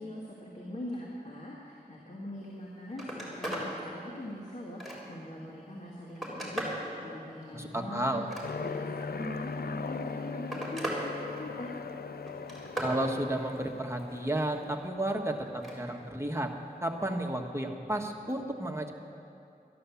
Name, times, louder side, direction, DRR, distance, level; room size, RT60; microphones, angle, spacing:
voice 1, 0.0-6.6 7.0-8.3 8.6-11.7, left 1 dB, 45° left, -4 dB, 1.9 m, -42 dB
Telephone, 2.5-2.6 2.9-3.7 4.2-5.3 5.8-6.8 8.1-8.9 9.9-11.0 11.4-11.8 12.3-13.0 15.4-15.8 17.2-17.3, right 1 dB, ahead, 3.5 m, -38 dB
voice 2, 7.5-8.3 12.8-16.5 16.8-18.9, right 1 dB, 15° right, 1 dB, 1.3 m, -32 dB
Aircraft, 8.4-14.9, left 4 dB, 75° left, 0.4 m, -39 dB
13.0 x 10.5 x 7.1 m, 2.6 s
wide cardioid pair, 55°, 16 cm